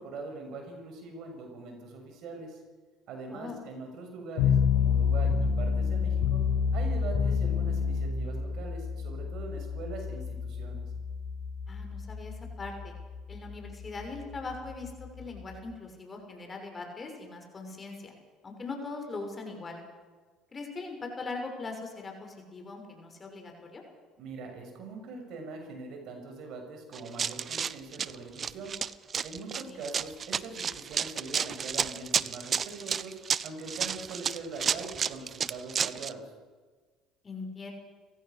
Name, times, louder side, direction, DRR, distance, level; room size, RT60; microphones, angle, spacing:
voice 1, 0.0-2.6 3.1-6.4 6.7-10.9 24.2-28.7 29.2-33.2 33.4-36.3, right 3 dB, 60° right, 3 dB, 6.6 m, -42 dB
voice 2, 3.3-3.6 11.7-12.9 13.3-18.1 18.4-19.8 20.5-23.8 29.6-29.8 37.2-37.7, left 3 dB, 30° left, 3 dB, 6.2 m, -40 dB
sound 1, 4.4-15.5, left 6 dB, 75° left, 3.8 m, -29 dB
Run, 26.9-36.1, right 7 dB, 40° right, 0.7 m, -31 dB
30.0 x 15.5 x 6.8 m, 1.4 s
hypercardioid pair, 75°, 0 cm